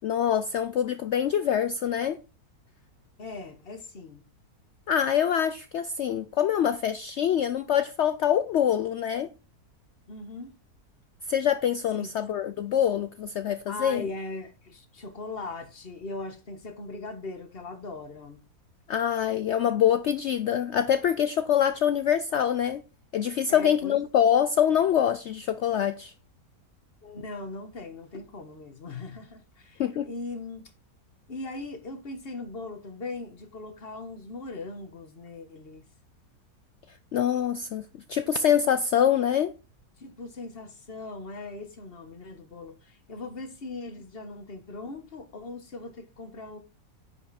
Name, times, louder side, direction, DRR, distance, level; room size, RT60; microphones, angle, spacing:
voice 1, 0.0-2.2 4.9-9.3 11.3-14.1 18.9-22.8 23.1-26.1 29.8-30.1 37.1-37.8 38.1-39.5, left 9 dB, 70° left, 0.7 m, -25 dB
voice 2, 3.2-4.2 10.1-10.5 12.0-12.1 13.7-18.4 23.5-24.0 27.0-30.7 31.3-35.8 40.0-46.6, left 3 dB, 40° left, 1.6 m, -39 dB
10.0 x 5.4 x 4.2 m
omnidirectional pair, 1.6 m